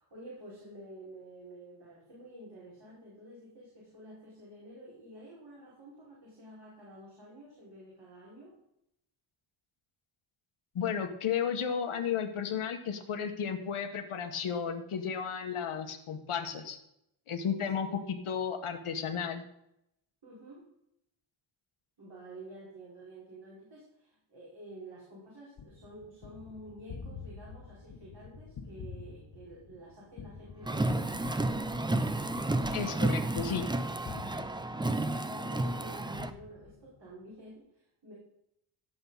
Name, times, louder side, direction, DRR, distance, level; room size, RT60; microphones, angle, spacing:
voice 1, 0.0-8.5 17.8-17.9 20.2-20.7 22.0-31.7 35.2-38.1, right 1 dB, 55° right, -7 dB, 5.1 m, -50 dB
voice 2, 10.7-16.8 17.3-19.4 32.7-33.7, left 7 dB, 85° left, 5 dB, 1.6 m, -33 dB
Gunshot gunfire, 25.6-35.3 35.7-37.1, left 5 dB, 55° left, 1.4 m, -47 dB
Car, 30.7-36.3, right 2 dB, 10° right, 0.4 m, -31 dB
16.5 x 7.9 x 4.1 m, 0.79 s
wide cardioid pair, 150°, 49 cm